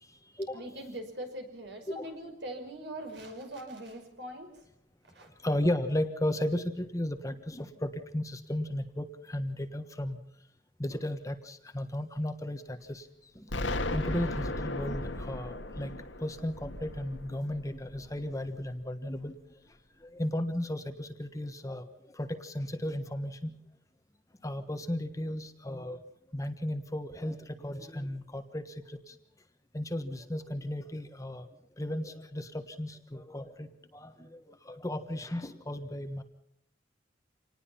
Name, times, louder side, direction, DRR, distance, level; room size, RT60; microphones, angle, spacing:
voice 1, 0.0-0.8 1.9-2.2 5.2-10.2 10.8-13.1 13.3-15.9 16.2-19.3 20.0-23.5 24.4-26.0 26.3-29.2 29.7-31.5 31.8-36.2, left 1 dB, 15° left, 8 dB, 1.3 m, -35 dB
voice 2, 0.5-4.5 5.1-5.3, right 1 dB, 60° right, 5 dB, 5.7 m, -42 dB
Explosion, 13.5-18.4, left 2 dB, 90° left, 2.1 m, -36 dB
27.0 x 19.5 x 5.8 m, 0.71 s
head